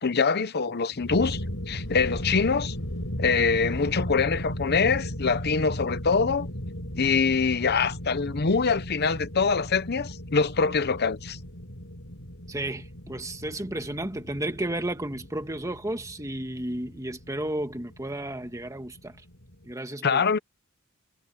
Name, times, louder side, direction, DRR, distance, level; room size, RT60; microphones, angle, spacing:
voice 1, 0.0-1.4 1.7-2.8 3.2-6.5 7.0-11.4 20.0-20.4, left 5 dB, 50° left, 0.8 m, -24 dB
sound 1, 0.9-19.7, equal, 65° left, 6.9 m, -37 dB
voice 2, 12.5-19.2 19.6-20.2, right 1 dB, 15° right, 1.7 m, -33 dB
head